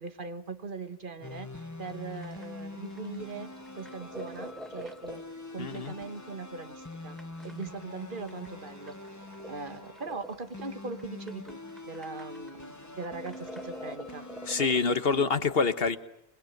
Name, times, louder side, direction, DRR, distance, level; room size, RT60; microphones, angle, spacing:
voice 1, 0.0-5.2 5.5-7.2 7.4-11.6 11.9-14.3, right 4 dB, 55° right, 10 dB, 1.7 m, -40 dB
sound 1, 1.2-15.2, left 2 dB, 15° left, 1.2 m, -44 dB
sound 2, 1.9-14.8, equal, ahead, 1.7 m, -47 dB
voice 2, 5.6-5.9 14.5-16.0, left 5 dB, 70° left, 12 dB, 1.5 m, -26 dB
28.0 x 21.5 x 9.1 m, 0.75 s
omnidirectional pair, 1.0 m